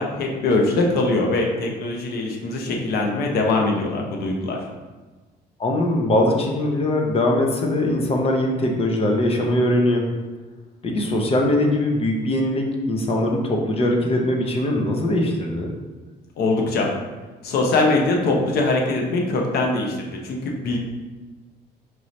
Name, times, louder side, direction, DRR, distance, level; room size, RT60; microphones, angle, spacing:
voice 1, 0.0-4.6 16.4-16.9 17.4-20.8, left 2 dB, 70° left, 0 dB, 0.8 m, -22 dB
voice 2, 5.6-10.0 10.8-15.7, left 1 dB, 35° left, 1 dB, 0.7 m, -21 dB
4.6 x 2.7 x 3.1 m, 1.3 s
cardioid pair, 110°, 17 cm